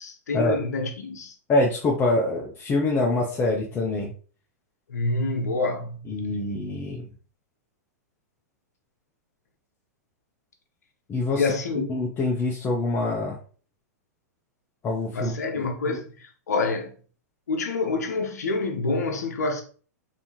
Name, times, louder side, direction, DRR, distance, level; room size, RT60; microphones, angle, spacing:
voice 1, 0.0-1.3 4.9-6.0 11.4-11.9 15.1-16.9 17.5-19.6, left 3 dB, 80° left, 0.7 m, -27 dB
voice 2, 1.5-4.1 6.1-7.0 11.1-11.4 11.9-13.4 14.8-16.0, left 2 dB, 25° left, 0.7 m, -25 dB
3.5 x 2.8 x 2.8 m
hypercardioid pair, 110°, 9 cm